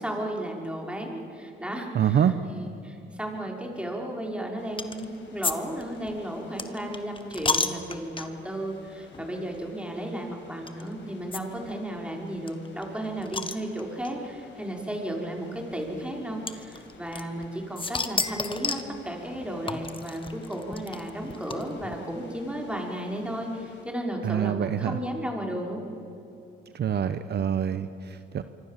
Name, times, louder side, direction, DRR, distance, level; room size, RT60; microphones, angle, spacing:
voice 1, 0.0-18.8 19.0-25.8, right 1 dB, 5° right, 0 dB, 5.4 m, -34 dB
voice 2, 1.9-2.3 24.2-25.0 26.7-28.4, right 9 dB, 55° right, 11 dB, 1.0 m, -25 dB
sound 1, 4.6-23.8, left 3 dB, 65° left, 5.8 m, -53 dB
sound 2, 4.8-5.1 5.4-5.5 5.8-8.5 9.1-9.3 9.5-9.6 10.7-10.8 11.3-11.4 11.7-11.8 12.0-12.1 12.5-14.1 15.0-15.1 16.5-17.5 17.8-18.9 19.7-21.9, left 4 dB, 25° left, 1.6 m, -31 dB
25.5 x 24.5 x 7.5 m, 2.8 s
cardioid pair, 90°, 20 cm